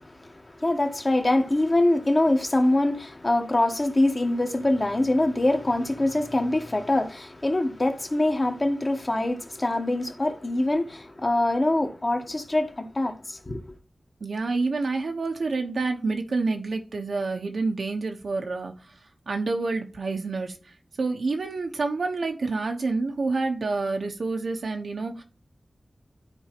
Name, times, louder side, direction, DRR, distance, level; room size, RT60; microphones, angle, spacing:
voice 1, 0.2-13.6, left 1 dB, 35° left, 1.4 m, -24 dB
voice 2, 14.2-18.7 19.3-20.6 21.0-25.2, right 3 dB, 80° right, 1.2 m, -28 dB
12.5 x 4.7 x 3.1 m
wide cardioid pair, 85°, 0 cm